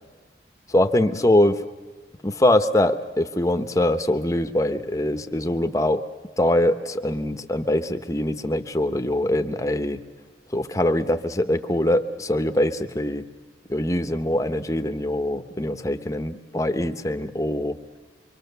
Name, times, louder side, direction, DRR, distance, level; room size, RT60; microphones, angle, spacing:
voice 1, 0.7-1.6 2.2-6.1 6.4-10.0 10.5-13.3 13.7-17.8, left 1 dB, 20° left, 8 dB, 0.9 m, -23 dB
25.0 x 25.0 x 6.8 m, 1.3 s
head